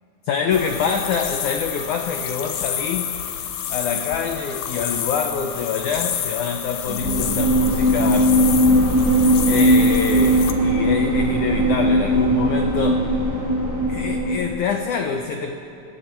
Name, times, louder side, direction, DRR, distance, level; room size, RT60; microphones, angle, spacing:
voice 1, 0.2-3.1 3.7-8.4 9.0-13.1 13.9-15.6, left 6 dB, 90° left, 5 dB, 1.7 m, -26 dB
sound 1, 0.5-10.5, left 9 dB, 65° left, 2.2 m, -29 dB
sound 2, 6.8-14.7, equal, 5° right, 2.2 m, -19 dB
30.0 x 20.5 x 4.5 m, 2.6 s
omnidirectional pair, 4.8 m